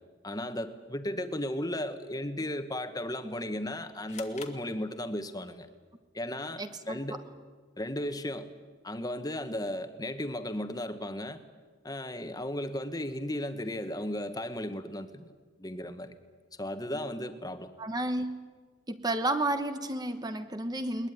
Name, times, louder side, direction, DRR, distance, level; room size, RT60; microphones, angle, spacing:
voice 1, 0.2-5.7 6.1-7.2 7.8-8.5 8.8-11.4 11.8-15.3 15.6-16.1 16.6-17.7, left 1 dB, 20° left, 9 dB, 1.4 m, -35 dB
sound 1, 4.1-5.5, left 6 dB, 40° left, 1.7 m, -48 dB
voice 2, 6.6-7.0 17.8-18.4 18.9-21.1, right 2 dB, 20° right, 8 dB, 1.1 m, -31 dB
21.0 x 20.5 x 9.5 m, 1.5 s
head